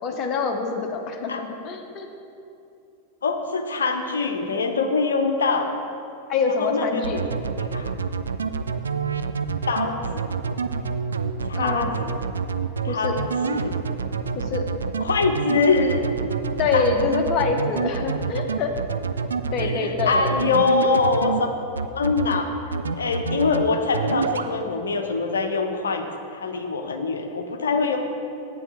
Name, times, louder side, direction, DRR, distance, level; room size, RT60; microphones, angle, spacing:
voice 1, 0.0-2.1 6.3-7.2 11.6-11.9 12.9-13.1 14.3-14.7 16.6-18.7 19.5-20.5, left 4 dB, 35° left, 3 dB, 1.0 m, -25 dB
voice 2, 3.2-5.8 6.6-7.0 7.6-7.9 9.7-10.3 11.4-12.1 12.8-13.8 15.0-16.0 16.7-16.9 19.6-21.5 21.9-22.5 23.0-26.1 26.3-28.0, left 4 dB, 70° left, 6 dB, 0.7 m, -24 dB
sound 1, 7.0-21.4 21.8-22.4 22.7-23.6 23.9-24.5, right 5 dB, 70° right, 0.3 m, -27 dB
9.6 x 8.5 x 3.6 m, 2.7 s
figure-of-eight pair, 90°, 0 cm